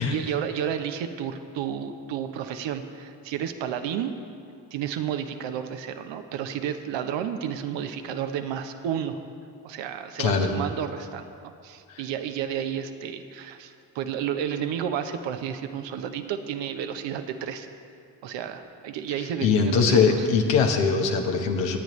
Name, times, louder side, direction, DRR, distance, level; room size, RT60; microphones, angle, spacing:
voice 1, 0.0-4.1 4.7-9.2 9.6-11.3 11.6-17.7 18.2-20.3, right 9 dB, 70° right, 8 dB, 0.9 m, -31 dB
voice 2, 10.2-10.5 19.2-21.8, left 5 dB, 75° left, 3 dB, 1.3 m, -22 dB
19.5 x 9.1 x 3.2 m, 2.4 s
hypercardioid pair, 45°, 46 cm